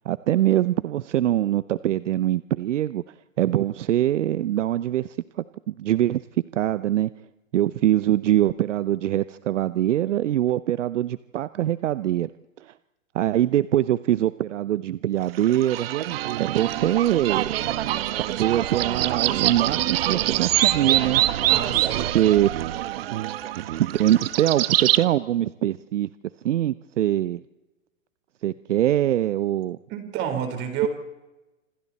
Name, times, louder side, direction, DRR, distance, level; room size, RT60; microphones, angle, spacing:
voice 1, 0.1-3.0 3.4-5.2 5.7-6.2 6.5-7.1 7.5-12.3 12.6-12.7 13.1-15.9 16.4-17.5 18.3-21.2 22.1-22.5 23.8-26.1 26.4-27.4 28.4-29.8, right 12 dB, 65° right, 16 dB, 0.8 m, -23 dB
sound 1, 15.3-25.0, right 13 dB, 50° right, 1.1 m, -25 dB
voice 2, 21.5-22.1 29.9-30.9, right 9 dB, 30° right, 6 dB, 4.3 m, -29 dB
27.0 x 26.0 x 4.3 m, 1.0 s
hypercardioid pair, 145°, 40 cm